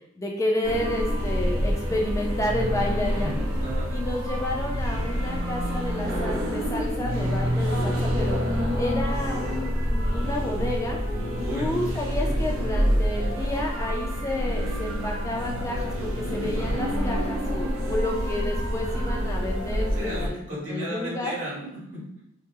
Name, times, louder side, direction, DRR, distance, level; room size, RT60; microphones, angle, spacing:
voice 1, 0.2-3.3 3.9-11.0 11.5-20.4 20.7-21.3, left 1 dB, 15° left, -1 dB, 0.4 m, -30 dB
sound 1, 0.6-20.3, equal, 90° right, 0.5 m, -27 dB
voice 2, 3.2-3.9 11.3-11.7 19.9-22.2, equal, 65° right, -10 dB, 1.4 m, -35 dB
2.8 x 2.0 x 3.4 m, 0.78 s
head